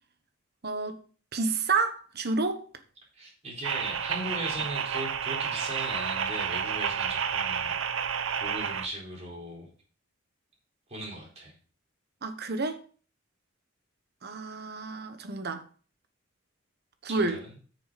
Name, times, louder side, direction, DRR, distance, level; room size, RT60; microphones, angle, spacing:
voice 1, 0.6-1.0 1.3-2.6 12.2-12.8 14.2-15.6 17.0-17.4, right 3 dB, 55° right, 1.2 m, -29 dB
voice 2, 3.1-7.8 8.3-9.7 10.9-11.5 17.1-17.6, right 1 dB, 35° right, 4.3 m, -38 dB
sound 1, 3.6-8.9, right 7 dB, 70° right, 0.7 m, -30 dB
9.4 x 6.6 x 4.1 m
head